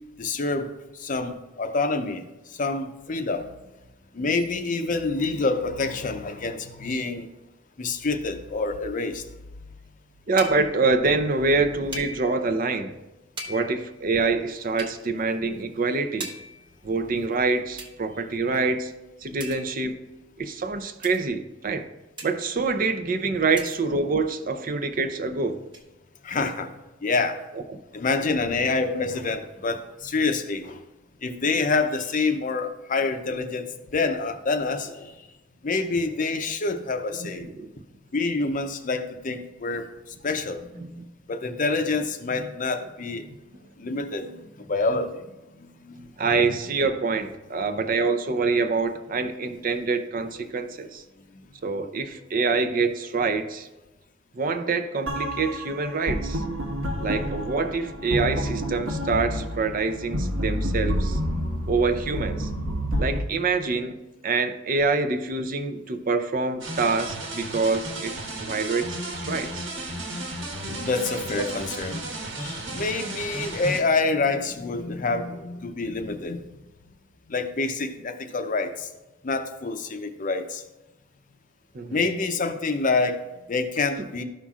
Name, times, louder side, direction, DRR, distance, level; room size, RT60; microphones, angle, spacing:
voice 1, 0.2-2.2 2.5-3.5 4.1-7.3 7.8-9.3 26.2-26.7 27.0-27.4 27.9-30.8 31.2-35.2 35.6-37.5 38.1-41.0 41.3-43.3 43.8-45.2 45.6-46.1 51.3-51.4 70.7-72.1 72.4-76.5 77.3-78.9 79.2-80.6 81.9-84.2, left 3 dB, 40° left, 0.6 m, -27 dB
voice 2, 10.3-12.9 13.5-16.3 16.8-18.9 19.2-20.0 20.4-21.9 22.2-25.6 37.2-37.7 40.8-41.1 46.2-51.0 51.6-53.7 54.4-56.4 57.0-61.2 61.7-62.5 63.0-64.0 64.2-68.1 68.4-69.7 71.4-71.5 81.7-82.0, right 4 dB, 45° right, 0.5 m, -26 dB
sound 1, 10.4-10.9 11.9-12.5 13.4-14.0 14.8-15.0 16.2-16.7 17.8-17.9 19.4-20.0 21.0-21.3 22.2-22.6 23.6-24.0 25.7-25.8, right 1 dB, 25° right, 1.0 m, -39 dB
sound 2, 55.1-63.2, equal, 90° right, 1.4 m, -29 dB
sound 3, 66.6-73.8, right 1 dB, 70° right, 1.4 m, -34 dB
13.0 x 5.7 x 2.4 m
head